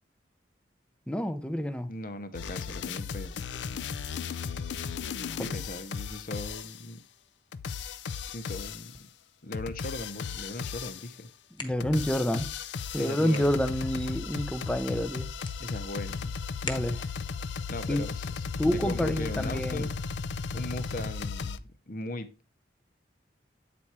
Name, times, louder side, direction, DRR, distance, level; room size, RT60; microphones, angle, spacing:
voice 1, 1.1-1.9 5.3-5.4 11.6-12.5 12.9-15.3 16.6-17.0 17.9-18.0 18.6-19.9, equal, 5° left, 0.5 m, -28 dB
voice 2, 1.9-3.4 5.4-7.0 8.3-9.0 9.4-11.3 12.9-13.5 15.6-16.4 17.7-18.3 18.7-19.9 20.5-22.3, left 2 dB, 50° left, 0.8 m, -38 dB
sound 1, 2.3-6.9 7.5-9.0 9.5-11.2 11.7-21.6, left 5 dB, 75° left, 0.4 m, -36 dB
sound 2, 8.7-17.4, left 3 dB, 25° left, 1.1 m, -48 dB
8.5 x 4.3 x 4.7 m
head